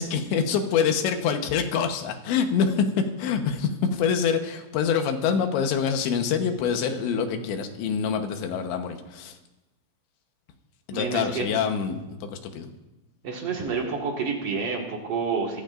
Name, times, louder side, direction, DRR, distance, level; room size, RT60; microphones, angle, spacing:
voice 1, 0.0-2.9 3.2-9.4 10.9-12.7, left 6 dB, 75° left, 5 dB, 3.2 m, -25 dB
voice 2, 10.9-11.5 13.2-15.6, right 5 dB, 85° right, -1 dB, 1.3 m, -29 dB
25.0 x 14.5 x 2.6 m, 1.0 s
omnidirectional pair, 5.7 m